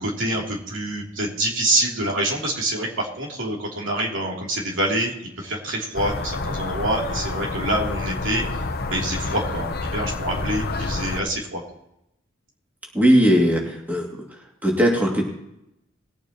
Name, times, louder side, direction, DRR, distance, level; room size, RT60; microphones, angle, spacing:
voice 1, 0.0-8.4 8.9-11.6, right 1 dB, 70° right, -2 dB, 3.1 m, -26 dB
sound 1, 5.9-11.2, left 3 dB, 50° left, 0.8 m, -28 dB
voice 2, 12.9-14.1 14.6-15.2, equal, 10° right, -1 dB, 2.4 m, -18 dB
20.5 x 9.1 x 3.0 m, 0.83 s
head